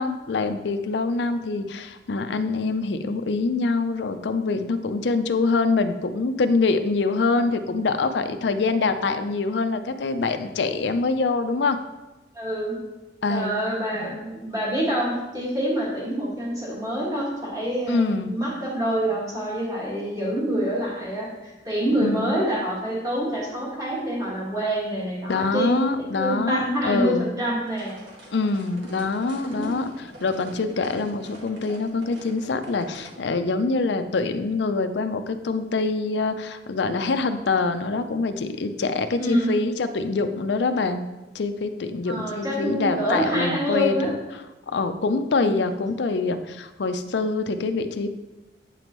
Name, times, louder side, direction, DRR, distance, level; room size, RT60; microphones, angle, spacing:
voice 1, 0.0-11.8 13.2-13.6 13.9-14.1 17.9-18.4 22.0-22.3 25.3-27.3 28.3-41.0 41.3-44.2 44.7-48.1, left 3 dB, 65° left, 9 dB, 0.5 m, -25 dB
voice 2, 12.3-12.8 13.3-27.9 29.4-29.7 39.2-39.5 42.1-44.1 45.4-45.8, right 1 dB, 20° right, -5 dB, 1.9 m, -26 dB
sound 1, 27.7-33.1, right 1 dB, 70° right, 1.6 m, -44 dB
8.3 x 5.2 x 3.1 m, 1.1 s
head